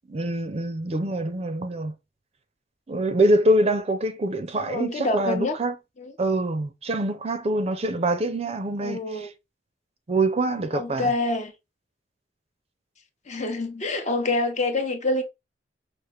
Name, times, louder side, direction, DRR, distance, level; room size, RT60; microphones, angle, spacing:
voice 1, 0.1-1.9 2.9-5.8 6.2-9.3 10.1-11.1, right 1 dB, 35° right, 0.5 m, -25 dB
voice 2, 4.5-5.5 6.0-6.1 8.8-9.3 10.7-11.5 13.3-15.2, left 2 dB, 40° left, 0.8 m, -26 dB
4.9 x 2.5 x 3.2 m
head